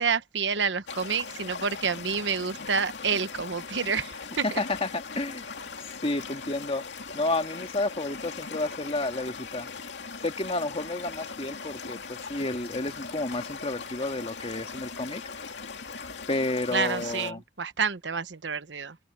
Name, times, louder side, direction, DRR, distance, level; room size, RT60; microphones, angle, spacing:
voice 1, 0.0-4.6 16.7-19.0, right 5 dB, 75° right, 1.1 m, -29 dB
sound 1, 0.9-17.3, left 5 dB, 70° left, 2.7 m, -40 dB
voice 2, 4.4-5.4 5.8-6.8 7.1-9.7 10.2-15.2 16.3-17.4, left 2 dB, 35° left, 2.2 m, -31 dB
open air
head